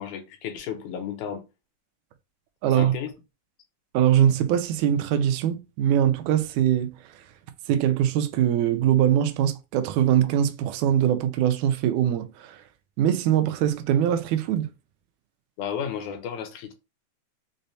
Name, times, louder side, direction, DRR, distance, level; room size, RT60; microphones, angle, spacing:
voice 1, 0.0-1.4 2.7-3.1 15.6-16.7, left 8 dB, 75° left, 2.0 m, -33 dB
voice 2, 2.6-2.9 3.9-6.9 7.7-12.6 13.0-14.7, right 10 dB, 80° right, 1.9 m, -22 dB
6.3 x 2.1 x 2.7 m
omnidirectional pair, 3.7 m